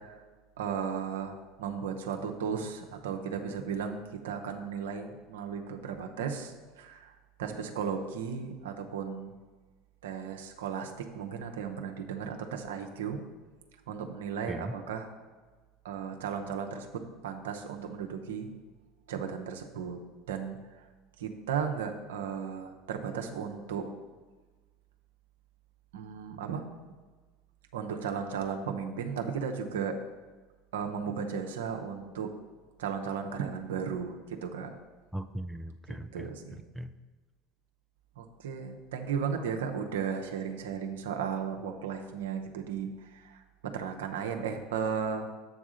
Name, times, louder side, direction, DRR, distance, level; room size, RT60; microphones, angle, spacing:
voice 1, 0.6-7.1 7.4-9.3 10.0-13.2 13.9-15.1 15.8-16.9 17.2-18.5 19.1-20.0 20.3-20.6 21.2-23.9 25.9-26.6 27.7-29.9 30.7-32.3 32.8-34.7 35.9-36.6 38.2-45.3, right 6 dB, 80° right, 4 dB, 0.7 m, -35 dB
voice 2, 35.1-36.9, right 1 dB, 5° right, 7 dB, 0.4 m, -39 dB
8.0 x 3.6 x 6.3 m, 1.3 s
hypercardioid pair, 75°, 0 cm